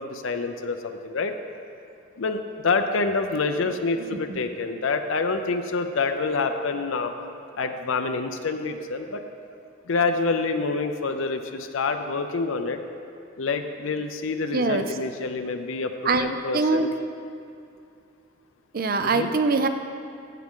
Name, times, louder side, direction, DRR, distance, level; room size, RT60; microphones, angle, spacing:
voice 1, 0.0-1.3 2.2-7.1 7.6-9.2 9.8-12.8 13.4-16.9 19.0-19.3, left 4 dB, 75° left, 6 dB, 0.6 m, -27 dB
voice 2, 14.5-14.9 16.0-16.3 16.5-16.9 18.7-19.7, right 3 dB, 45° right, 8 dB, 0.5 m, -23 dB
15.0 x 7.6 x 3.7 m, 2.5 s
head